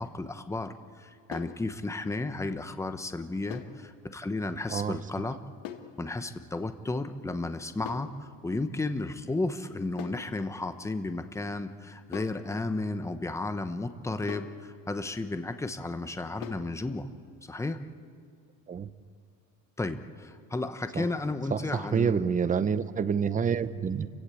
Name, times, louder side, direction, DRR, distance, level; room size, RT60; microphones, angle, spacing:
voice 1, 0.0-5.4 6.0-17.1 17.4-17.8 19.8-22.3, left 2 dB, 10° left, 9 dB, 1.0 m, -33 dB
sound 1, 1.3-1.6 3.5-3.8 5.6-5.9 7.8-8.2 10.0-10.3 12.1-12.4 14.3-14.6 16.4-16.7, left 11 dB, 70° left, 1.7 m, -41 dB
voice 2, 21.5-24.1, right 6 dB, 25° right, 13 dB, 0.8 m, -28 dB
28.5 x 16.5 x 8.4 m, 2.2 s
cardioid pair, 150°, 33 cm